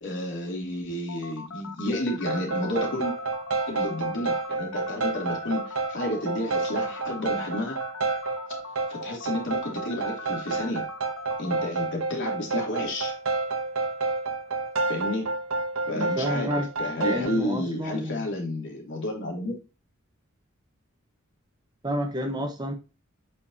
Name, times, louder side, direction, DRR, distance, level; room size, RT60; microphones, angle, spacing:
voice 1, 0.0-3.1 3.7-7.8 8.9-10.8 11.4-13.1 14.9-15.2 15.9-16.5 16.8-19.6, left 1 dB, 60° left, 0 dB, 2.9 m, -31 dB
sound 1, 1.1-11.7, left 5 dB, 85° left, 0.7 m, -41 dB
sound 2, 2.2-17.4, right 3 dB, 80° right, 1.0 m, -30 dB
voice 2, 15.9-16.7 17.0-18.3 21.8-22.7, equal, 20° right, 4 dB, 1.1 m, -30 dB
8.8 x 5.2 x 2.8 m, 0.30 s
head